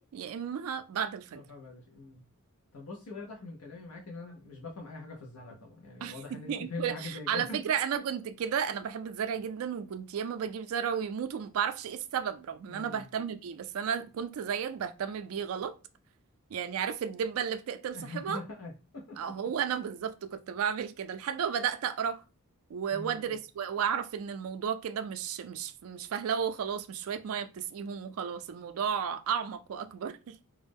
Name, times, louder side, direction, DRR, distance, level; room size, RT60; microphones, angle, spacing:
voice 1, 0.0-1.4 6.0-15.7 16.5-18.4 19.2-22.2 22.7-30.3, right 7 dB, 70° right, 0.3 m, -33 dB
voice 2, 1.5-2.2 2.7-7.6 12.7-13.1 17.9-19.4 22.9-23.4, left 3 dB, 80° left, 0.6 m, -43 dB
2.3 x 2.0 x 3.4 m
head